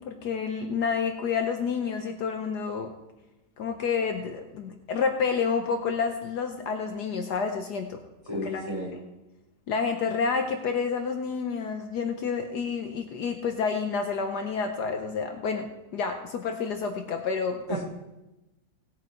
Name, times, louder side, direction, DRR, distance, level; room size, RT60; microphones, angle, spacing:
voice 1, 0.0-2.9 3.6-8.0 8.5-8.6 9.7-17.8, left 5 dB, 70° left, 5 dB, 1.4 m, -29 dB
voice 2, 8.3-8.9 17.7-17.8, equal, 15° right, -5 dB, 4.4 m, -32 dB
18.5 x 6.6 x 4.6 m, 1.0 s
omnidirectional pair, 1.9 m